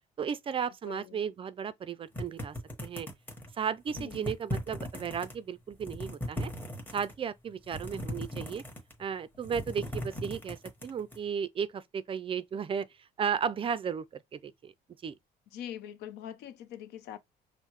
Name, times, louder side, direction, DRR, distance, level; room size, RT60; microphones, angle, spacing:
voice 1, 0.2-2.6 2.8-3.1 3.5-6.5 6.9-8.6 9.0-12.9 13.2-14.7 15.0-15.1, right 7 dB, 30° right, 0.4 m, -34 dB
voice 2, 0.8-1.2 4.0-4.4 15.5-17.2, left 10 dB, 80° left, 0.7 m, -43 dB
sound 1, 2.1-3.5 3.9-5.3 5.7-7.1 7.6-9.0 9.3-11.2, equal, 10° left, 1.4 m, -38 dB
5.4 x 2.1 x 3.1 m
cardioid pair, 110°, 17 cm